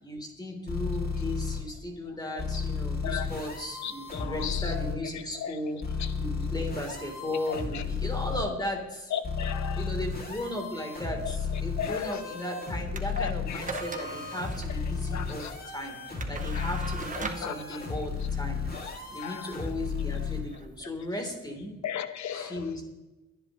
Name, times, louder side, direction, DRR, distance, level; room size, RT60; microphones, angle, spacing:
voice 1, 0.0-5.8 6.2-9.1 9.7-18.6 19.1-21.8 22.3-22.8, left 1 dB, 15° left, 2 dB, 3.4 m, -36 dB
sound 1, 0.7-1.6 2.4-4.9 5.8-8.4 9.2-20.4, left 5 dB, 30° left, 2.7 m, -34 dB
voice 2, 3.8-4.7 5.4-5.5 6.0-6.1 7.5-7.8 9.1-9.9 11.8-12.2 13.2-13.6 15.1-15.5 16.5-16.8 17.2-17.8 18.7-19.6 21.8-22.6, left 8 dB, 70° left, 10 dB, 1.2 m, -36 dB
sound 2, 12.9-21.4, right 4 dB, 25° right, 1.3 m, -42 dB
23.0 x 10.5 x 3.1 m, 1.1 s
cardioid pair, 90°, 30 cm